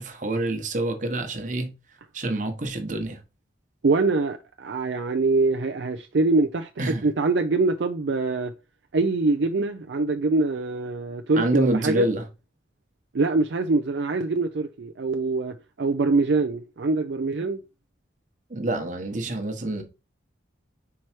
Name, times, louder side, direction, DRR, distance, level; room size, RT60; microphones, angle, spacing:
voice 1, 0.0-1.7 2.1-3.2 6.8-7.0 11.4-12.3 18.5-19.8, right 1 dB, 40° right, 1.1 m, -27 dB
voice 2, 3.8-8.5 8.9-12.1 13.1-17.6, right 3 dB, 65° right, 0.5 m, -24 dB
4.7 x 4.5 x 4.4 m
head